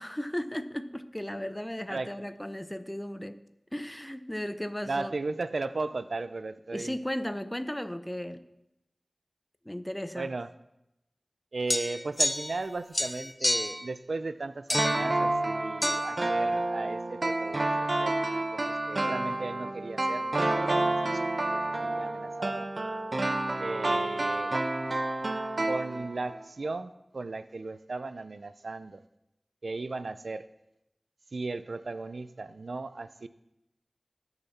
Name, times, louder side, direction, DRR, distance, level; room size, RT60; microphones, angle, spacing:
voice 1, 0.0-3.4 3.7-5.1 6.7-8.4 9.6-10.3, left 1 dB, 15° left, 10 dB, 0.8 m, -35 dB
voice 2, 4.8-7.0 10.1-10.5 11.5-18.6 18.9-22.7 23.6-24.5 25.7-29.0 29.6-30.4 31.3-33.3, right 3 dB, 85° right, 13 dB, 0.5 m, -36 dB
sound 1, 11.7-12.7 12.9-13.8 14.7-15.1 15.8-16.0, left 1 dB, 45° left, 1.0 m, -29 dB
sound 2, 14.7-26.4 26.6-26.7, right 2 dB, 60° right, 1.0 m, -29 dB
19.0 x 6.8 x 4.2 m, 0.86 s
wide cardioid pair, 50°, 0 cm